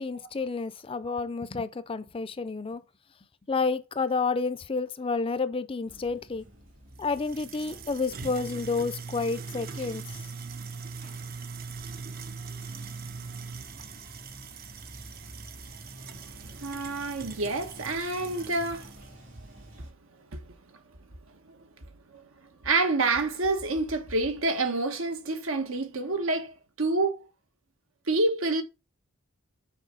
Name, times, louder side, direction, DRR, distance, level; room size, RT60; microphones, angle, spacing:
voice 1, 0.0-2.8 3.5-6.4 7.0-10.3, left 4 dB, 25° left, 0.4 m, -30 dB
Bathtub (filling or washing), 5.8-19.9, right 1 dB, 70° right, 3.3 m, -49 dB
sound 1, 7.0-19.0, right 5 dB, 45° right, 0.6 m, -41 dB
voice 2, 16.4-18.9 20.3-20.4 22.1-22.2 22.6-27.2 28.1-28.6, right 2 dB, 85° right, 1.2 m, -28 dB
6.6 x 4.4 x 3.8 m
head